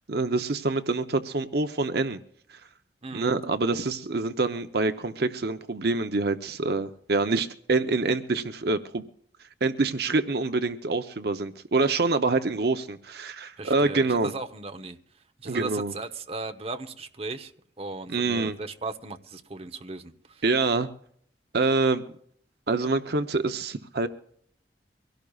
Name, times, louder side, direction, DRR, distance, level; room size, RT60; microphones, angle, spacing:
voice 1, 0.1-2.2 2.5-2.6 3.1-9.0 9.6-14.3 15.4-15.9 18.1-18.6 20.4-20.9 21.5-22.0 22.7-24.1, right 3 dB, 65° right, 0.8 m, -26 dB
voice 2, 3.0-3.3 13.6-15.0 15.4-17.5 17.8-20.4, right 3 dB, 35° right, 1.0 m, -37 dB
24.0 x 17.0 x 2.4 m
head